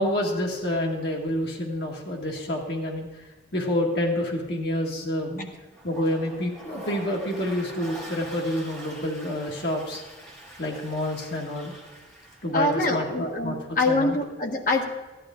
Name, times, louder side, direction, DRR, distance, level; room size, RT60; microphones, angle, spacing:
voice 1, 0.0-3.1 3.5-5.5 5.8-10.0 10.6-11.7 12.4-13.5 13.9-14.2, left 1 dB, 65° left, -1 dB, 1.8 m, -28 dB
Toilet flush, 5.7-12.5, right 1 dB, 5° left, 3.3 m, -43 dB
voice 2, 12.5-14.8, left 2 dB, 50° left, 2 dB, 1.5 m, -24 dB
14.5 x 11.0 x 3.7 m, 1.1 s
head